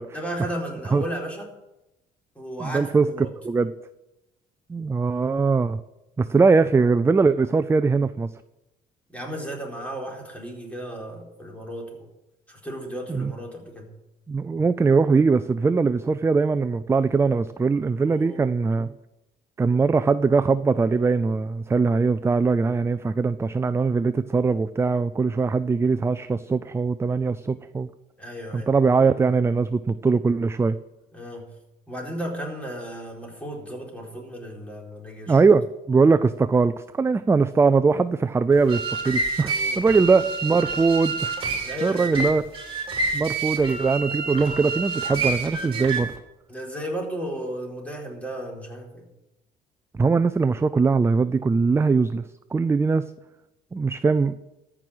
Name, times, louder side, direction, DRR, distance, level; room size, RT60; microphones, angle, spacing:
voice 1, 0.1-1.5 2.3-3.3 9.1-12.1 12.5-13.9 18.1-18.5 28.2-28.7 31.1-31.5 31.9-35.4 39.5-39.9 41.6-42.4 46.5-49.0, equal, 10° left, -1 dB, 4.2 m, -34 dB
voice 2, 2.6-3.7 4.7-5.8 6.2-8.3 13.1-13.3 14.3-18.9 19.6-27.9 28.5-30.8 35.3-41.3 41.8-42.4 43.1-46.1 50.0-52.2 52.5-53.1 53.7-54.4, right 4 dB, 15° right, 13 dB, 0.4 m, -21 dB
sound 1, 38.5-46.2, right 3 dB, 35° right, 3.3 m, -28 dB
14.0 x 6.2 x 8.7 m, 0.95 s
cardioid pair, 110°, 17 cm